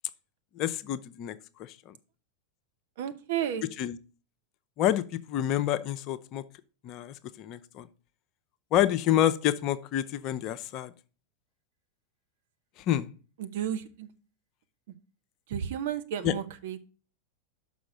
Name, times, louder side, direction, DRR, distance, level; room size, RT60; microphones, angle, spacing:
voice 1, 0.6-1.3 3.8-4.0 4.8-5.0 5.3-6.4 6.8-7.1 7.4-7.8 8.7-10.9 12.9-13.1 16.2-16.3, left 12 dB, 40° left, 13 dB, 0.5 m, -27 dB
voice 2, 3.0-3.7 13.4-14.1 15.5-16.8, right 9 dB, 55° right, 8 dB, 0.8 m, -32 dB
6.1 x 5.5 x 6.1 m, 0.37 s
figure-of-eight pair, 90°, 0 cm